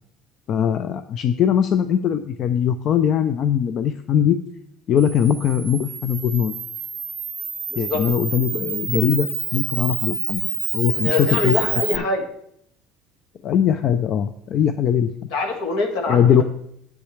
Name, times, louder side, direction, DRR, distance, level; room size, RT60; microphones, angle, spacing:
voice 1, 0.5-4.4 4.9-6.5 7.8-11.5 11.9-12.0 13.4-15.1 16.1-16.4, left 8 dB, 45° left, 11 dB, 0.4 m, -20 dB
Camera, 5.0-12.0, right 6 dB, 25° right, 0.4 m, -28 dB
voice 2, 7.7-8.0 11.0-12.3 15.3-16.4, left 3 dB, 70° left, 3 dB, 1.9 m, -24 dB
10.0 x 8.0 x 3.3 m, 0.71 s
cardioid pair, 130°, 0 cm